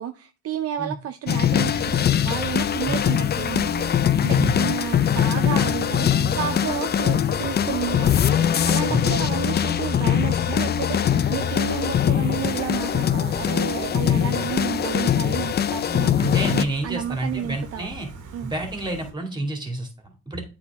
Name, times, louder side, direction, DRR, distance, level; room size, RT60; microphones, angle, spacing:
voice 1, 0.0-17.9 18.3-18.5, right 10 dB, 55° right, 9 dB, 0.5 m, -31 dB
sound 1, 1.3-16.6, left 9 dB, 35° left, 0.4 m, -22 dB
Gull seagull, 1.6-19.1, right 5 dB, 80° right, 1.7 m, -38 dB
voice 2, 16.2-18.1 18.4-20.4, right 2 dB, 15° right, 4 dB, 2.3 m, -29 dB
8.3 x 4.4 x 3.5 m, 0.32 s
cardioid pair, 90°, 30 cm